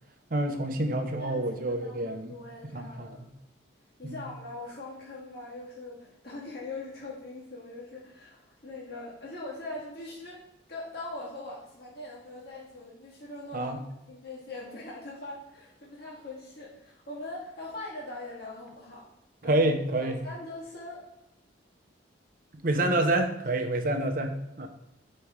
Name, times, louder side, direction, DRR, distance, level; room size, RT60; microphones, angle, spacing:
voice 1, 0.3-2.3 2.7-3.1 4.0-4.2 13.5-13.8 19.4-20.2 22.5-24.7, right 1 dB, 45° right, 5 dB, 0.7 m, -28 dB
voice 2, 1.2-3.2 4.0-10.4 10.7-13.8 14.1-19.1 19.4-19.6 20.0-21.1, left 2 dB, 55° left, -6 dB, 1.8 m, -41 dB
5.0 x 4.2 x 5.1 m, 0.92 s
head